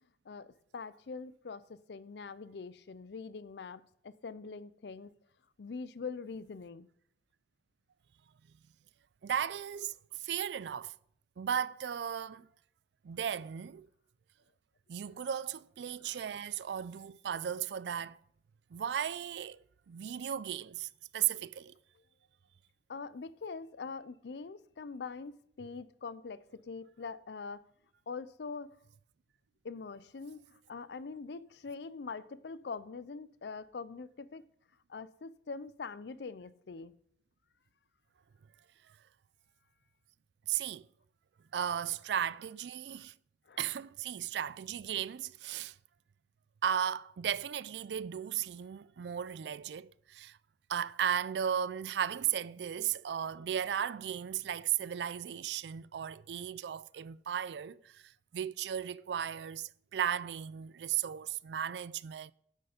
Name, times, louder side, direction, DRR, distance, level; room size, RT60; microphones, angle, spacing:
voice 1, 0.3-5.1 5.6-6.9 16.0-16.2 22.9-27.6 28.1-28.8 29.6-34.4 34.9-36.9 43.5-43.6, left 4 dB, 70° left, 0.5 m, -43 dB
voice 2, 9.2-9.9 10.2-11.0 11.4-12.5 13.0-13.9 14.9-18.2 18.7-19.6 19.9-21.7 40.5-40.9 41.5-43.1 43.6-45.8 46.6-50.4 50.7-62.3, right 9 dB, 70° right, 0.4 m, -35 dB
9.9 x 7.9 x 5.1 m
head